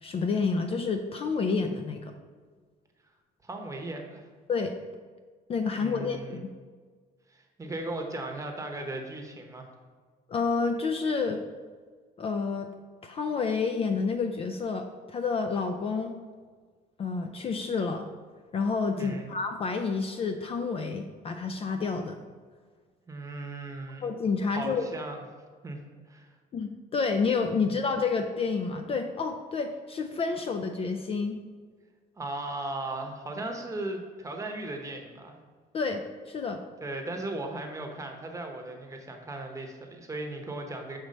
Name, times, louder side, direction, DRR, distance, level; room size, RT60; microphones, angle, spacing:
voice 1, 0.0-2.1 4.5-4.7 5.5-6.5 10.3-11.4 12.2-12.7 13.0-16.1 17.0-18.1 18.5-22.2 24.0-24.9 26.5-31.4 35.7-36.6, left 4 dB, 35° left, 6 dB, 0.4 m, -29 dB
voice 2, 3.4-4.3 5.8-6.4 7.3-9.7 18.9-19.3 23.1-24.1 24.6-25.2 25.6-25.8 26.1-26.3 32.2-35.4 36.8-41.0, right 2 dB, 20° right, 3 dB, 0.9 m, -37 dB
6.4 x 3.0 x 5.3 m, 1.5 s
cardioid pair, 110°, 17 cm